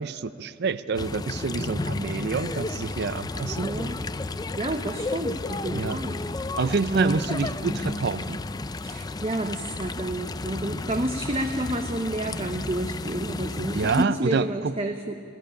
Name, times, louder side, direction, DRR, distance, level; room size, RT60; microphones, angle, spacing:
voice 1, 0.0-3.7 5.7-6.0 6.6-8.4 13.7-14.7, right 4 dB, 55° right, 14 dB, 0.5 m, -27 dB
sound 1, 0.9-14.0, left 2 dB, 20° left, 0.4 m, -32 dB
voice 2, 3.6-4.0 4.6-6.2 6.9-7.2 8.8-15.3, right 1 dB, 30° right, 5 dB, 0.8 m, -30 dB
19.0 x 16.0 x 10.0 m, 2.5 s
head